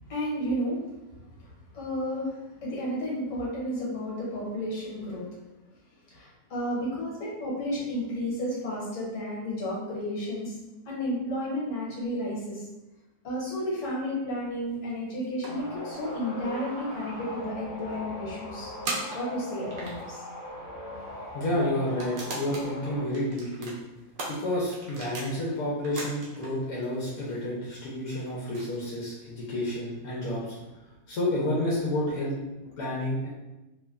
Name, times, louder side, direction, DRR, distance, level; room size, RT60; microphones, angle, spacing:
voice 1, 0.1-0.8 1.1-5.3 6.1-10.6 10.9-12.7 13.2-18.7 19.1-20.2, equal, 65° left, -6 dB, 1.3 m, -32 dB
sound 1, 14.7-16.3 16.7-16.8 17.0-17.1 17.8-18.0 18.9-20.2 20.9-21.0 21.8-22.7 23.1-25.3 25.7-26.5 26.8-29.3, right 2 dB, 75° right, 1.1 m, -39 dB
sound 2, 15.5-23.0, left 1 dB, 50° left, 0.7 m, -40 dB
voice 2, 21.3-23.7 24.3-30.6 31.1-32.3 32.6-33.3, left 1 dB, 85° left, -6 dB, 1.1 m, -30 dB
3.0 x 2.1 x 2.3 m, 1.0 s
omnidirectional pair, 1.5 m